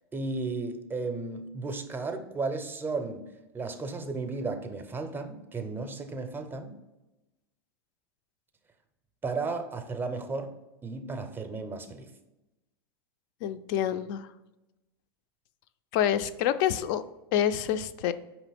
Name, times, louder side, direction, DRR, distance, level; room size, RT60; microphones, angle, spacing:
voice 1, 0.1-6.8 9.2-10.5 10.8-12.1, right 3 dB, 15° right, 7 dB, 0.5 m, -34 dB
voice 2, 13.4-14.3 15.9-17.0 17.3-18.1, left 10 dB, 55° left, 12 dB, 0.4 m, -27 dB
5.0 x 3.0 x 3.4 m, 1.0 s
hypercardioid pair, 110°, 13 cm